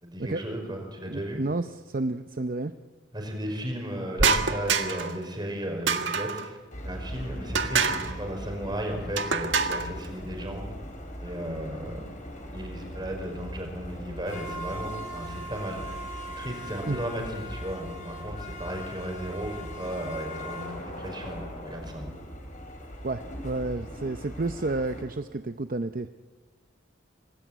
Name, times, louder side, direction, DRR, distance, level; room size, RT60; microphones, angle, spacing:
voice 1, 0.0-1.4 3.1-6.6 6.8-10.6 11.2-12.1 12.5-16.0 16.3-22.1, right 1 dB, 25° right, 3 dB, 5.5 m, -35 dB
voice 2, 1.1-2.7 16.8-17.0 23.0-26.1, right 2 dB, 50° right, 9 dB, 0.7 m, -31 dB
sound 1, 4.2-5.2 5.9-6.5 7.5-8.1 9.2-9.9, right 5 dB, 80° right, 1.5 m, -25 dB
sound 2, 6.7-25.0, equal, 40° left, 5.1 m, -39 dB
26.5 x 20.0 x 9.2 m, 1.4 s
head